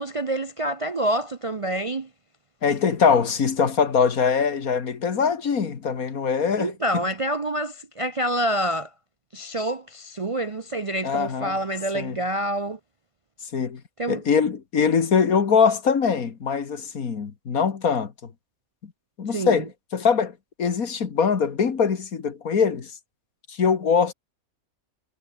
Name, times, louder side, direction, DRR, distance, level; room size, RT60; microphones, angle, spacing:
voice 1, 0.0-2.1 6.6-8.9 9.3-12.8 14.0-14.2 19.3-19.6, right 1 dB, 35° right, 0.5 m, -27 dB
voice 2, 2.6-7.0 11.0-11.6 11.9-12.2 13.5-13.8 14.1-18.3 19.2-20.3 20.6-22.9 23.5-24.1, left 6 dB, 75° left, 2.2 m, -22 dB
omnidirectional pair, 1.5 m